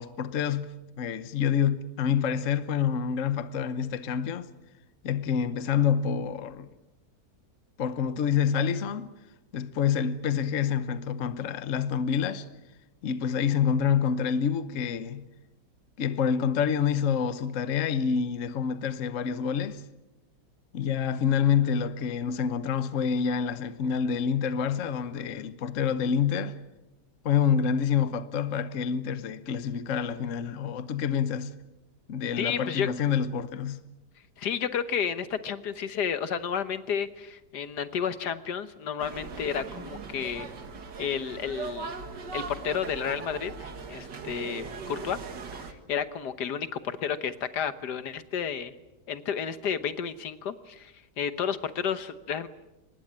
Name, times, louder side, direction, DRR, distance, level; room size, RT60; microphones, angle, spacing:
voice 1, 0.0-4.5 5.0-6.7 7.8-9.1 9.5-12.5 13.0-15.3 16.0-19.8 20.7-26.6 27.2-31.5 32.1-33.8, left 7 dB, 50° left, 1.2 m, -27 dB
voice 2, 32.4-32.9 34.4-40.5 41.0-41.9 42.3-45.2 45.5-48.7 49.1-52.5, left 7 dB, 75° left, 1.7 m, -31 dB
sound 1, 39.0-45.7, right 5 dB, 85° right, 2.4 m, -39 dB
24.5 x 20.5 x 8.8 m
omnidirectional pair, 1.8 m